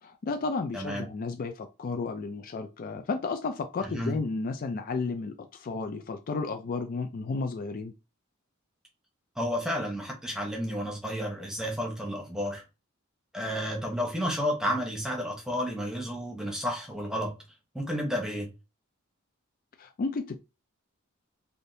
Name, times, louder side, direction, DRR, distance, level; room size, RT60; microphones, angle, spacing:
voice 1, 0.0-7.9 19.8-20.4, left 4 dB, 45° left, 0.3 m, -33 dB
voice 2, 0.7-1.1 3.8-4.2 9.4-12.6 13.3-17.3 17.7-18.5, equal, 5° right, 0.9 m, -31 dB
3.4 x 2.5 x 2.7 m
head